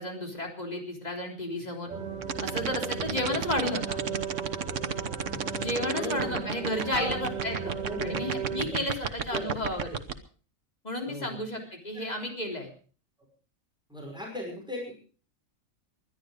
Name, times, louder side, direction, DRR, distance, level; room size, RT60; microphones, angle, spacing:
voice 1, 0.0-1.9 2.4-4.0 5.6-7.7 8.0-10.0 10.8-12.7, left 1 dB, 30° left, 2 dB, 3.6 m, -32 dB
sound 1, 1.9-8.7, right 6 dB, 35° right, 4.4 m, -36 dB
sound 2, 2.2-10.1, right 7 dB, 65° right, 1.4 m, -31 dB
voice 2, 5.3-6.4 6.9-7.2 7.8-8.2 8.5-9.6 11.1-12.2 13.9-14.9, equal, 5° right, -1 dB, 5.6 m, -38 dB
20.5 x 11.5 x 5.1 m, 0.40 s
omnidirectional pair, 1.4 m